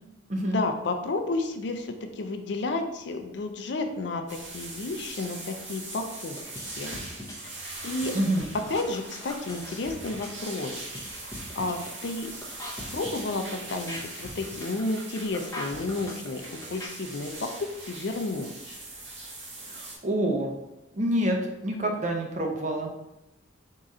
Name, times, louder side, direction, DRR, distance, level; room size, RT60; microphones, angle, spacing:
voice 1, 0.4-6.4 6.8-7.0 7.4-7.5 7.8-8.1 8.7-10.9 11.2-12.3 12.9-18.8, left 2 dB, 60° left, 6 dB, 0.4 m, -32 dB
sound 1, 4.3-20.0, right 2 dB, 70° right, 1.1 m, -41 dB
sound 2, 5.9-16.9, left 1 dB, 15° left, 0.7 m, -41 dB
voice 2, 8.1-8.5 19.7-20.5 20.9-22.9, right 1 dB, 40° right, 1 dB, 0.6 m, -27 dB
3.7 x 2.5 x 4.1 m, 0.90 s
head